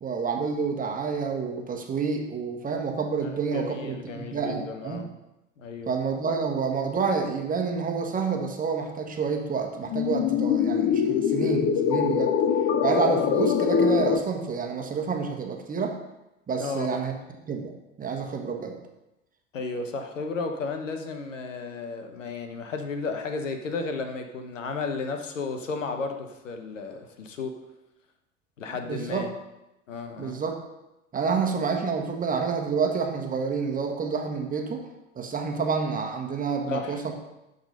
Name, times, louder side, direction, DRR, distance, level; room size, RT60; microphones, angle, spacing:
voice 1, 0.0-5.0 5.9-12.4 12.8-16.0 16.5-17.1 17.5-18.8 28.6-29.3 30.2-30.6 31.1-34.9 35.1-37.1, right 5 dB, 20° right, 2 dB, 1.4 m, -28 dB
voice 2, 3.2-5.1 5.6-5.9 16.6-17.0 19.5-27.5 28.6-29.3 29.9-30.3 36.7-37.0, left 4 dB, 75° left, 6 dB, 1.1 m, -33 dB
sound 1, 9.9-14.2, left 7 dB, 35° left, 0.6 m, -23 dB
11.5 x 4.1 x 5.4 m, 0.95 s
figure-of-eight pair, 80°, 38 cm